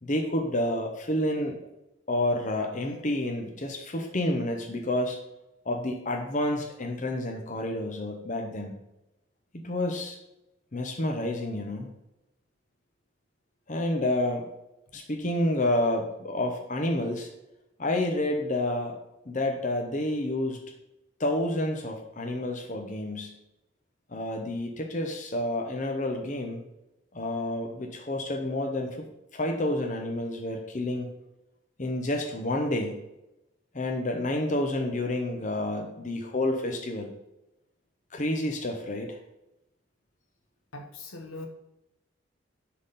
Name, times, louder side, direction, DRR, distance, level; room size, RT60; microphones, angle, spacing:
voice 1, 0.0-1.6 2.1-5.2 5.6-8.8 9.5-10.2 10.7-11.9 13.7-14.5 14.9-17.3 17.8-19.0 19.3-20.6 21.2-23.3 24.1-26.6 27.1-29.1 29.3-31.1 31.8-33.0 33.7-37.1 38.1-39.2, left 1 dB, 40° left, 2 dB, 0.8 m, -29 dB
voice 2, 40.7-41.5, left 2 dB, 85° left, 4 dB, 1.3 m, -41 dB
10.5 x 3.8 x 4.1 m, 0.92 s
head